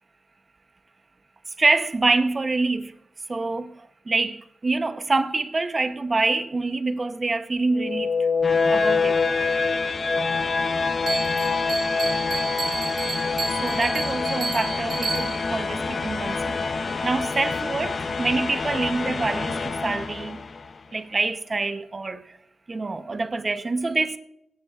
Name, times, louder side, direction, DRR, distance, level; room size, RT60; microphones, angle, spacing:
voice 1, 1.6-3.0 3.3-8.2 8.7-9.2 13.6-16.6 17.0-20.4 20.9-22.4 22.7-24.2, right 3 dB, 30° right, 0.8 m, -26 dB
sound 1, 7.7-20.7, left 4 dB, 45° left, 0.5 m, -26 dB
Bell, 11.1-15.6, right 4 dB, 60° right, 2.3 m, -31 dB
22.5 x 10.0 x 2.4 m
wide cardioid pair, 100°, 0 cm